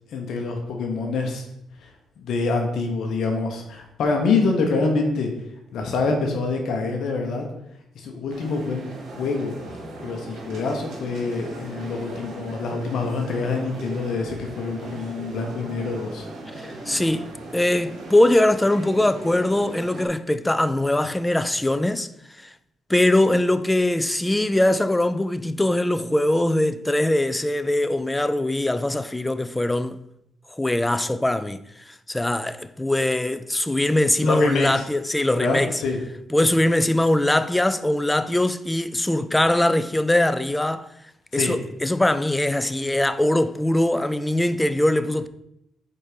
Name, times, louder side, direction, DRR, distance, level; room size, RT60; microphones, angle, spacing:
voice 1, 0.1-1.4 1.8-1.9 2.2-5.3 5.7-7.4 7.9-8.9 9.2-9.5 10.0-16.2 34.2-34.8 35.4-36.0 41.3-41.5, left 3 dB, 70° left, 1.0 m, -26 dB
sound 1, 8.3-20.1, right 1 dB, 70° right, 2.0 m, -38 dB
voice 2, 16.6-22.5 22.9-30.0 30.5-35.8 36.3-40.9 41.3-45.3, left 1 dB, 10° left, 0.4 m, -22 dB
4.7 x 4.3 x 5.0 m
cardioid pair, 90°, 0 cm